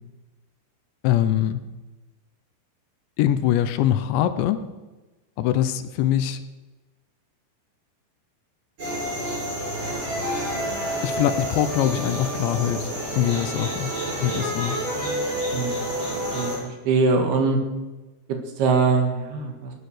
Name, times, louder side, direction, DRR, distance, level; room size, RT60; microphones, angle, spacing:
voice 1, 1.0-1.6 3.2-4.6 5.4-6.4 11.0-13.9 14.2-14.8, left 11 dB, 80° left, 11 dB, 3.1 m, -23 dB
sound 1, 8.8-16.6, right 1 dB, 45° right, 9.3 m, -29 dB
voice 2, 16.3-17.6 18.6-19.7, right 4 dB, 65° right, 4 dB, 3.6 m, -22 dB
17.5 x 12.0 x 6.5 m, 1.1 s
omnidirectional pair, 5.3 m